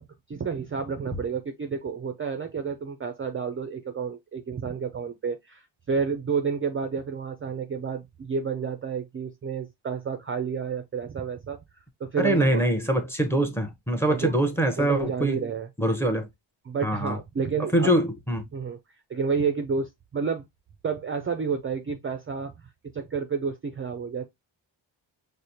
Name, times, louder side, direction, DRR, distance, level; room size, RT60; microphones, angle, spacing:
voice 1, 0.0-11.6 12.0-12.6 14.1-14.4 14.8-15.7 16.7-18.0 18.5-18.8 19.1-20.5 20.8-22.5 22.9-24.3, right 5 dB, 30° right, 0.4 m, -30 dB
voice 2, 12.2-15.4 15.8-16.3 16.8-17.2 17.7-18.5, right 1 dB, 5° left, 0.7 m, -24 dB
4.9 x 2.1 x 2.8 m
cardioid pair, 75°, 47 cm